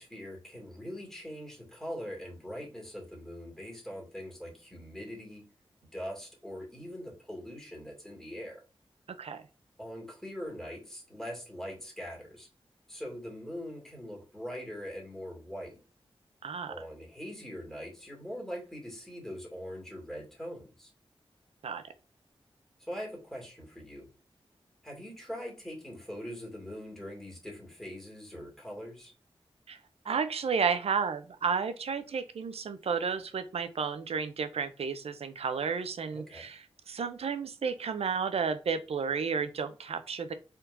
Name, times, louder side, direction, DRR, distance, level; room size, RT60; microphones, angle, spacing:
voice 1, 0.0-5.4 5.9-8.6 9.8-12.5 12.9-15.8 16.7-20.9 22.8-24.1 24.8-29.1 36.1-36.5, equal, 5° left, -2 dB, 2.2 m, -42 dB
voice 2, 16.4-16.7 21.6-21.8 29.7-29.8 30.0-36.6 36.9-40.3, right 6 dB, 85° right, 10 dB, 0.5 m, -32 dB
4.5 x 3.7 x 2.6 m, 0.33 s
wide cardioid pair, 70°, 10 cm